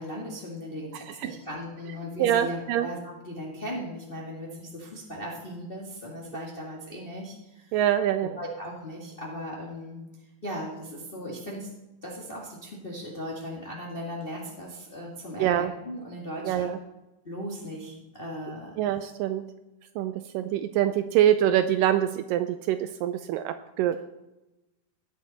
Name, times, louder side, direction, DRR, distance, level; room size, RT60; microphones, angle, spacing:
voice 1, 0.0-7.8 8.2-10.0 10.4-11.7 12.0-16.7 17.2-18.8, equal, 25° left, -3 dB, 1.2 m, -37 dB
voice 2, 2.2-2.9 7.7-8.4 15.4-15.7 16.5-16.8 18.8-19.4 20.0-24.0, right 11 dB, 80° right, 9 dB, 2.1 m, -25 dB
17.5 x 6.7 x 4.0 m, 0.98 s
omnidirectional pair, 3.9 m